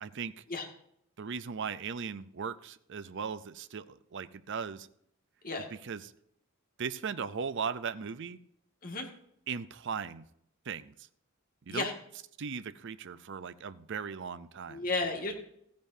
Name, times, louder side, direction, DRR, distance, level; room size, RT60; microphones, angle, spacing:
voice 1, 0.0-0.3 1.2-4.9 5.7-6.1 6.8-8.4 9.5-10.3 10.7-10.9 11.7-11.9 12.4-14.9, right 6 dB, 60° right, 14 dB, 0.6 m, -38 dB
voice 2, 14.7-15.3, left 3 dB, 45° left, 2 dB, 2.0 m, -33 dB
15.0 x 10.5 x 2.7 m, 0.71 s
head